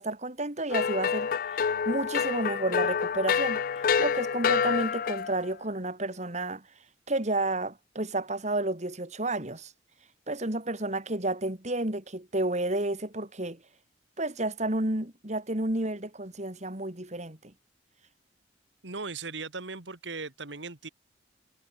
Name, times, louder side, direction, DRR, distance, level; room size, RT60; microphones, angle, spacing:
voice 1, 0.0-3.6 4.0-6.6 7.1-9.7 10.3-13.6 14.2-17.5, right 2 dB, 40° right, 3.3 m, -31 dB
sound 1, 0.7-5.4, left 6 dB, 50° left, 0.4 m, -27 dB
voice 2, 18.8-20.9, right 4 dB, 75° right, 2.2 m, -38 dB
head